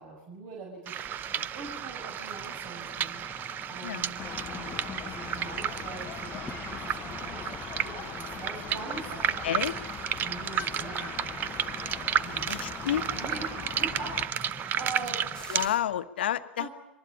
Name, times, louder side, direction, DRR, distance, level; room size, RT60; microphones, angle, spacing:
voice 1, 0.0-3.2 3.7-9.5 10.2-11.7 12.2-12.5 13.1-15.3 16.6-16.7, right 4 dB, 50° right, -1 dB, 6.2 m, -43 dB
Toilet flush, 0.9-16.0, left 4 dB, 10° left, 1.3 m, -49 dB
sound 1, 0.9-15.7, right 10 dB, 35° right, 0.8 m, -33 dB
sound 2, 4.2-14.3, left 10 dB, 30° left, 0.9 m, -41 dB
voice 2, 9.4-9.7 12.5-13.1 15.5-16.7, left 11 dB, 70° left, 10 dB, 1.2 m, -30 dB
24.0 x 20.0 x 8.6 m, 0.95 s
hypercardioid pair, 100°, 6 cm